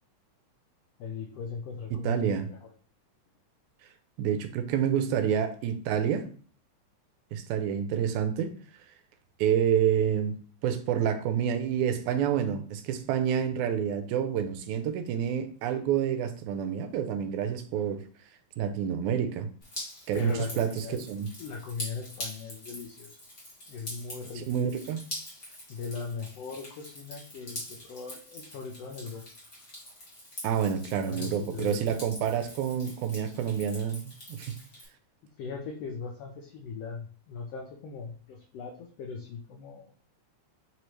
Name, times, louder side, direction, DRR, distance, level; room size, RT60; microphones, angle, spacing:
voice 1, 1.0-2.3 2.6-2.7 20.1-21.0 21.4-23.2 23.7-24.5 24.8-24.9 25.7-29.2 30.9-31.9 35.4-39.9, left 5 dB, 80° left, 1.4 m, -39 dB
voice 2, 2.0-2.5 4.2-6.3 7.3-8.5 9.4-10.4 10.6-18.0 18.6-19.5 20.1-21.3 24.4-25.0 30.4-34.6, right 8 dB, 80° right, 1.9 m, -28 dB
Drip, 19.6-34.9, left 1 dB, 55° left, 0.6 m, -44 dB
5.1 x 3.1 x 3.0 m
omnidirectional pair, 3.5 m